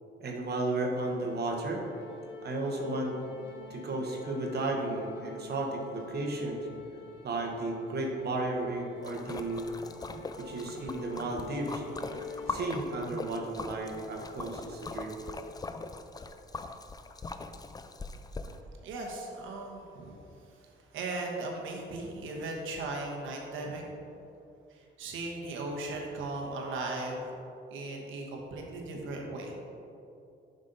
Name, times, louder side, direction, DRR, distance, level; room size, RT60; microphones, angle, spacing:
voice 1, 0.2-1.8 2.4-3.1 3.7-6.7 7.2-9.7 10.4-11.8 12.5-15.2, right 2 dB, 55° right, 1 dB, 1.1 m, -33 dB
sound 1, 1.0-12.5, left 5 dB, 70° left, 1.1 m, -47 dB
Splash splatter, 9.0-18.6, left 3 dB, 20° left, 0.4 m, -41 dB
voice 2, 18.8-24.0 24.7-27.3 27.7-29.5, right 2 dB, 85° right, 0 dB, 1.2 m, -38 dB
7.7 x 5.3 x 4.0 m, 2.7 s
cardioid pair, 90°, 20 cm